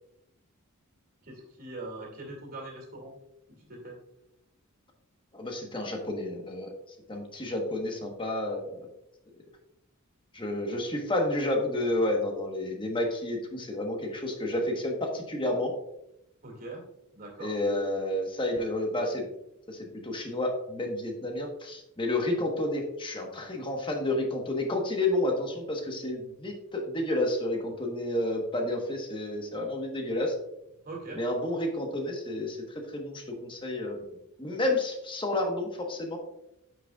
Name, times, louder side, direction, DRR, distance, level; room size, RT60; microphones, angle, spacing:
voice 1, 1.2-3.1 3.7-3.9 16.4-16.8 17.1-17.5 30.8-31.2, right 2 dB, 45° right, 0 dB, 2.3 m, -41 dB
voice 2, 5.3-6.7 7.1-8.8 10.3-15.7 17.4-19.3 19.7-30.3 31.2-32.6 32.9-34.0 34.4-36.2, left 1 dB, 25° left, 2 dB, 1.2 m, -30 dB
9.2 x 6.2 x 2.3 m, 0.83 s
head